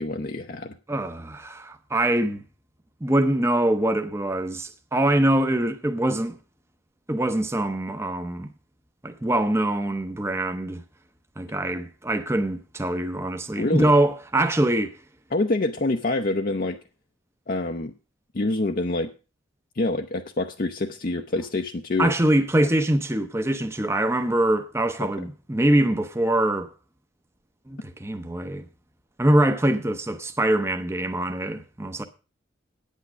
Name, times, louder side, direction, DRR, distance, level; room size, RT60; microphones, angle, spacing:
voice 1, 0.0-0.8 13.6-13.9 15.3-16.8 17.5-17.9 18.3-19.1 19.8-22.1 22.6-22.7, left 2 dB, 45° left, 0.6 m, -26 dB
voice 2, 0.9-2.4 3.0-6.4 7.1-8.5 9.0-10.8 11.4-15.0 22.0-26.7 27.7-28.7 29.2-32.0, right 1 dB, 15° right, 0.7 m, -23 dB
9.3 x 8.3 x 6.1 m
head